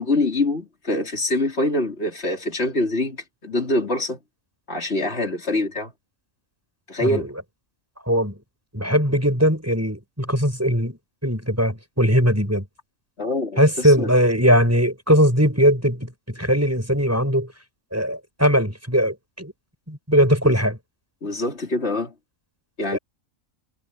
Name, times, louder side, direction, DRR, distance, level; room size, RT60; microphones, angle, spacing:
voice 1, 0.0-3.2 3.4-4.2 4.7-5.9 6.9-7.3 13.2-14.1 20.4-20.5 21.2-22.1 22.8-23.0, left 2 dB, 55° left, 4.1 m, -24 dB
voice 2, 7.0-7.3 8.1-8.4 8.7-11.0 11.2-12.6 13.6-17.5 17.9-19.5 19.9-20.8 22.9-23.0, equal, 10° right, 6.4 m, -20 dB
omnidirectional pair, 1.4 m